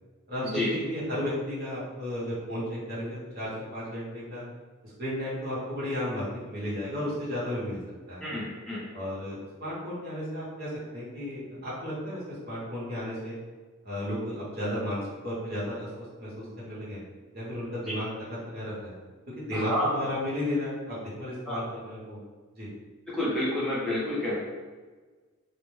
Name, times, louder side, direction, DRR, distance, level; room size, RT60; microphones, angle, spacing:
voice 1, 0.3-4.4 4.8-7.8 8.1-8.3 8.9-13.4 13.8-17.0 17.3-18.9 19.3-22.2 22.5-22.7, left 1 dB, 50° right, -7 dB, 0.9 m, -34 dB
voice 2, 8.2-8.8 19.5-19.9 21.5-21.6 23.1-24.4, left 1 dB, ahead, -9 dB, 0.5 m, -29 dB
2.1 x 2.0 x 3.0 m, 1.4 s
head